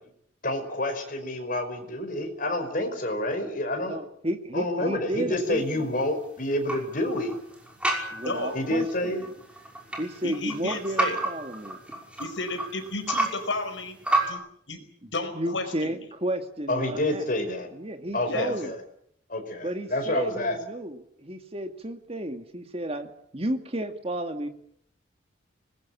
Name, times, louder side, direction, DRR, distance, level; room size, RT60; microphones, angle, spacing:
voice 1, 0.4-4.0 4.5-7.4 8.5-9.3 16.7-17.7 18.1-18.8 19.3-20.6, left 1 dB, 45° left, 5 dB, 5.2 m, -28 dB
voice 2, 3.8-5.9 8.1-9.3 10.0-11.8 15.0-17.3 17.7-18.7 19.6-24.5, right 1 dB, 30° right, 6 dB, 2.3 m, -32 dB
sound 1, 5.4-14.3, right 2 dB, 5° right, 5.9 m, -32 dB
voice 3, 8.2-8.6 10.2-11.2 12.2-14.0 14.3-14.4 14.7-14.8 15.1-15.9 18.3-18.5, left 3 dB, 65° left, 8 dB, 4.8 m, -32 dB
25.0 x 20.5 x 8.7 m, 0.68 s
head